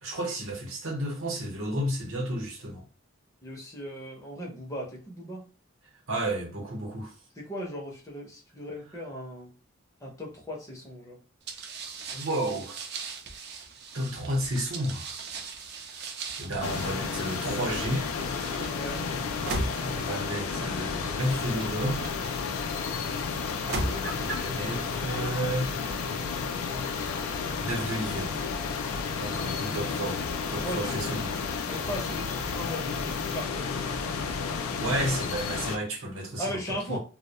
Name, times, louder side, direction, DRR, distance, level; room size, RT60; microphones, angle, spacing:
voice 1, 0.0-2.9 6.1-7.1 12.1-12.8 13.9-15.1 15.9-16.1 16.4-18.1 19.8-22.1 23.8-25.8 27.6-28.4 29.0-30.2 30.5-31.3 34.8-37.0, right 1 dB, 70° right, 0.8 m, -32 dB
voice 2, 3.4-5.4 7.4-9.5 10.0-11.2 18.7-19.1 29.1-29.8 30.6-31.4 31.7-34.3 36.4-37.0, equal, 15° left, 0.5 m, -38 dB
sound 1, 11.5-22.7 23.4-24.5, right 3 dB, 50° right, 0.4 m, -38 dB
sound 2, 16.6-35.8, left 5 dB, 85° left, 0.3 m, -32 dB
2.2 x 2.0 x 2.8 m
head